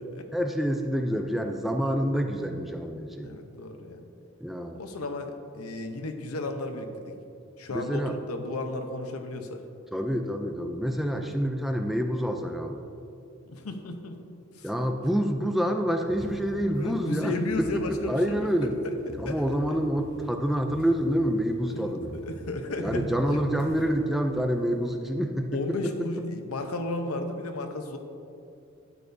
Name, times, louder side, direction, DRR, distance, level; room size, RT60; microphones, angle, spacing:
voice 1, 0.3-3.3 4.4-4.8 7.7-8.2 9.9-12.8 14.6-18.8 19.2-22.1 22.8-25.5 25.8-26.2, equal, ahead, 4 dB, 0.4 m, -27 dB
voice 2, 3.2-4.1 4.7-7.1 7.6-9.7 11.2-11.4 13.5-14.2 14.5-14.7 16.7-18.5 18.8-18.9 19.2-19.8 21.7-23.5 25.5-28.0, left 2 dB, 90° left, 6 dB, 0.8 m, -34 dB
sound 1, 16.1-21.8 22.0-24.9, right 1 dB, 25° left, 2.3 m, -42 dB
12.0 x 8.7 x 2.7 m, 2.6 s
head